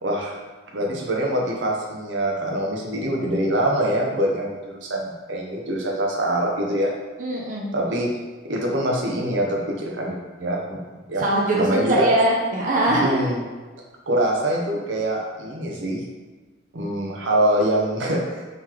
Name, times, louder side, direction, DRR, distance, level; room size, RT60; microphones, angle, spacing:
voice 1, 0.0-0.4 0.7-6.9 7.7-8.1 8.4-10.8 11.1-11.2 11.5-12.1 12.9-13.4 14.1-16.0 16.7-18.5, right 1 dB, 80° right, -1 dB, 0.8 m, -24 dB
voice 2, 7.2-7.7 11.2-13.4, right 1 dB, 40° right, -3 dB, 0.5 m, -21 dB
3.8 x 3.2 x 2.9 m, 1.3 s
head